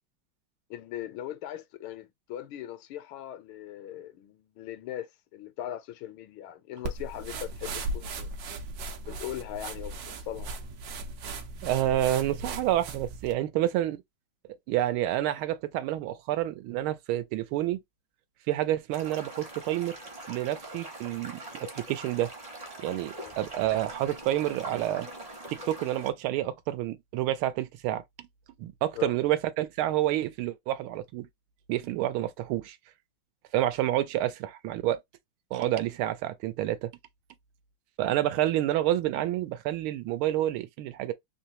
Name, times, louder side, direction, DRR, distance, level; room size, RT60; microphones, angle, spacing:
voice 1, 0.7-8.3 9.0-10.5 23.2-23.3 28.9-29.1, left 12 dB, 80° left, 1.5 m, -39 dB
sound 1, 6.8-13.3, right 2 dB, 65° right, 1.0 m, -37 dB
voice 2, 11.6-14.0 14.7-17.8 18.5-20.0 20.3-22.3 22.8-25.1 25.5-28.3 28.6-31.3 31.7-32.8 33.5-35.0 35.5-36.9 38.0-41.1, right 13 dB, 85° right, 1.4 m, -29 dB
sound 2, 18.9-26.1, right 1 dB, 30° right, 0.6 m, -43 dB
3.6 x 2.7 x 2.8 m
omnidirectional pair, 2.3 m